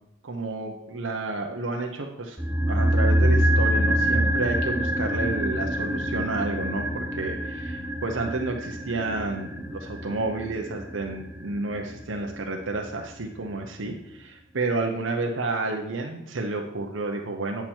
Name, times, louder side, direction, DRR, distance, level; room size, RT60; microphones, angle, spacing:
voice 1, 0.2-2.4 2.7-17.7, right 3 dB, 70° right, 2 dB, 0.8 m, -30 dB
sound 1, 2.4-12.6 12.9-13.0, equal, 10° right, 0.7 m, -26 dB
8.9 x 5.9 x 4.4 m, 0.86 s
head